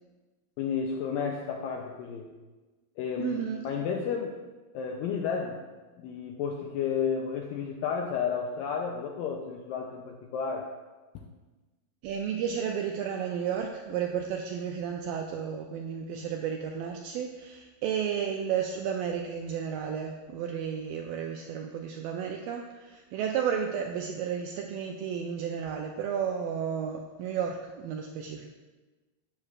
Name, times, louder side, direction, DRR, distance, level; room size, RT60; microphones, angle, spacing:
voice 1, 0.6-2.3 3.0-4.4 4.7-5.7 6.0-10.7 11.1-11.3, left 6 dB, 85° left, 1 dB, 2.0 m, -32 dB
voice 2, 3.2-3.6 12.0-28.5, right 8 dB, 85° right, 2 dB, 2.0 m, -32 dB
11.5 x 8.7 x 2.4 m, 1.2 s
omnidirectional pair, 4.6 m